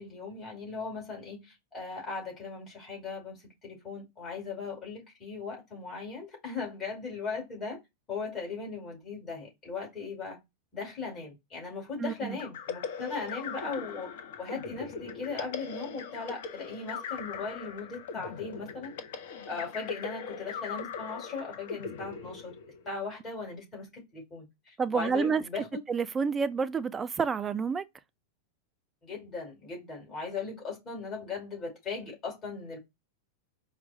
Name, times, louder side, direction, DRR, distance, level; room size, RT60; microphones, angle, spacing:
voice 1, 0.0-7.8 8.1-10.4 10.7-14.1 14.4-18.9 19.5-22.5 22.9-25.7 29.0-32.8, left 4 dB, 25° left, 2.2 m, -38 dB
voice 2, 12.0-12.4 24.8-25.4 25.9-27.8, right 5 dB, 20° right, 0.3 m, -29 dB
sound 1, 12.4-23.0, left 6 dB, 55° left, 0.6 m, -40 dB
4.4 x 2.0 x 2.6 m
figure-of-eight pair, 90°, 0 cm